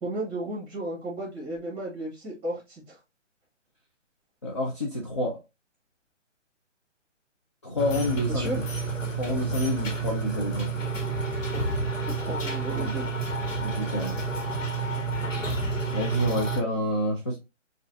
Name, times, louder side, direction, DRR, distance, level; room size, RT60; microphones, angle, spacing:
voice 1, 0.0-3.0 8.3-8.6 12.2-13.1, right 1 dB, 15° right, 1.8 m, -34 dB
voice 2, 4.4-5.4 7.6-8.5 9.2-10.7 12.7-12.9 13.6-14.2 15.9-17.4, left 1 dB, 25° left, 0.4 m, -28 dB
sound 1, 7.8-16.6, right 3 dB, 90° left, 1.3 m, -30 dB
4.4 x 2.4 x 2.6 m
hypercardioid pair, 145°, 37 cm